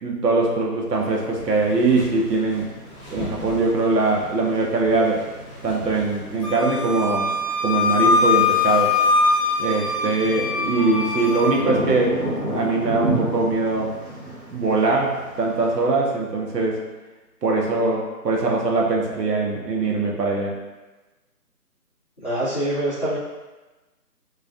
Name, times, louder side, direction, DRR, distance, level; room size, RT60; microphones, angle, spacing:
voice 1, 0.0-2.7 3.1-5.2 5.6-7.3 7.6-9.0 9.6-12.2 12.5-13.9 14.5-16.8 17.4-20.5, right 3 dB, 85° right, -1 dB, 0.7 m, -22 dB
sound 1, 0.9-15.8, right 1 dB, 40° right, 1.0 m, -33 dB
sound 2, 1.4-6.8, left 1 dB, 10° right, 1.0 m, -40 dB
Wind instrument woodwind instrument, 6.4-11.6, left 4 dB, 75° left, 0.6 m, -22 dB
voice 2, 22.2-23.2, right 1 dB, 30° left, -18 dB, 0.6 m, -24 dB
2.4 x 2.3 x 2.3 m, 1.2 s
figure-of-eight pair, 170°, 47 cm